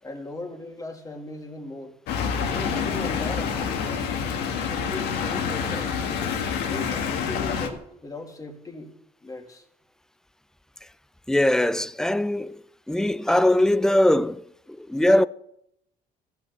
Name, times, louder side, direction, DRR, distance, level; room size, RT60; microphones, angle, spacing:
voice 1, 0.0-2.0 2.5-4.0 4.6-5.9 6.6-8.9 9.2-9.7, left 2 dB, 20° left, 2.1 m, -38 dB
sound 1, 2.1-7.7, left 6 dB, 85° left, 1.7 m, -27 dB
sound 2, 3.0-3.3 3.5-7.7, left 5 dB, 55° left, 2.3 m, -44 dB
voice 2, 11.3-12.6 12.9-14.4 14.8-15.3, left 1 dB, 5° left, 0.4 m, -21 dB
15.0 x 5.9 x 6.9 m
cardioid pair, 110°, 17 cm